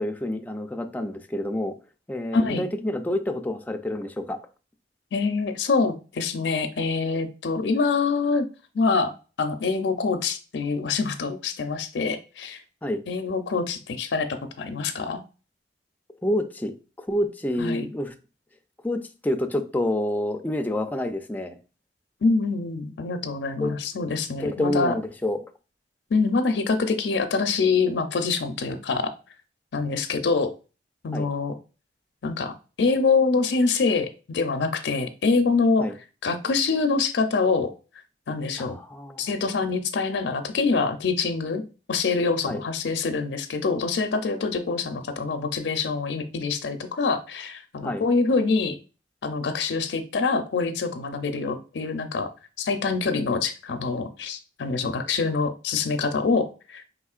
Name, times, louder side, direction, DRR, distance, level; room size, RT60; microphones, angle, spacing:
voice 1, 0.0-1.7 2.1-4.4 12.8-13.0 16.2-18.1 18.8-21.6 23.6-23.8 24.4-25.4 31.1-31.3 35.8-35.9 38.6-39.3 42.5-42.6 47.8-48.0, left 1 dB, 10° left, 5 dB, 0.4 m, -28 dB
voice 2, 2.3-2.6 5.1-8.5 8.7-9.1 9.4-12.6 13.1-15.2 17.6-17.9 22.2-25.0 26.1-29.1 29.7-30.5 31.0-31.5 32.2-35.9 36.2-37.7 38.3-38.8 39.2-41.6 41.9-48.8 49.2-52.3 52.6-56.8, left 4 dB, 75° left, 7 dB, 0.5 m, -25 dB
4.9 x 3.6 x 2.4 m, 0.34 s
head